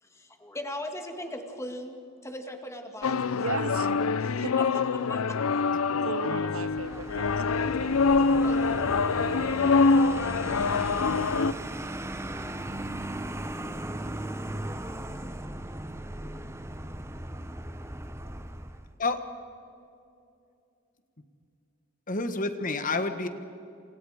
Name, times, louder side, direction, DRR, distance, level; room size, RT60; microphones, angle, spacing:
voice 1, 0.0-3.9 4.6-5.4 8.4-9.0, left 1 dB, 15° left, 5 dB, 2.0 m, -39 dB
sound 1, 3.0-11.5, left 4 dB, 85° left, 0.6 m, -25 dB
voice 2, 3.3-3.9 4.2-4.7 6.0-8.0, right 5 dB, 80° right, 14 dB, 0.8 m, -36 dB
Vehicle, 6.7-18.9, right 1 dB, 15° right, 0.9 m, -37 dB
voice 3, 22.1-23.3, left 3 dB, 40° left, 9 dB, 1.4 m, -29 dB
28.0 x 28.0 x 5.0 m, 2.6 s
head